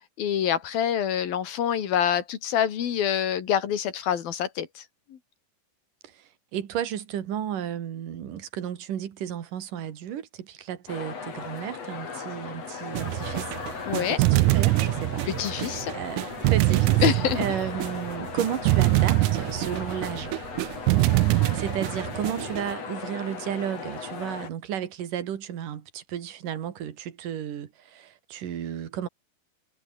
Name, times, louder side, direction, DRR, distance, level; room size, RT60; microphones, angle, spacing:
voice 1, 0.2-4.8 5.1-5.2 13.9-14.2 15.3-16.0 17.0-17.4 21.4-21.6, left 9 dB, 85° left, 4.2 m, -26 dB
voice 2, 6.0-13.6 13.9-16.2 16.5-17.0 17.4-20.4 21.5-29.1, right 10 dB, 65° right, 3.7 m, -33 dB
sound 1, 10.9-24.5, left 5 dB, 45° left, 4.3 m, -37 dB
sound 2, 12.9-22.7, right 20 dB, 90° right, 1.7 m, -24 dB
omnidirectional pair, 4.1 m